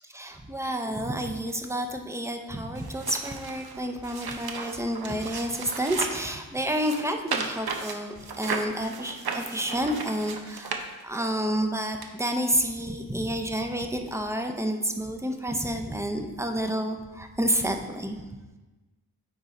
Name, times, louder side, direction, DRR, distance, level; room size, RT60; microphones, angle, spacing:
voice 1, 0.1-18.2, right 1 dB, 5° right, 5 dB, 0.6 m, -29 dB
sound 1, 2.7-6.3 6.7-11.3 12.0-12.1, right 5 dB, 70° right, 0.8 m, -35 dB
9.4 x 3.7 x 4.2 m, 1.2 s
wide cardioid pair, 100°, 38 cm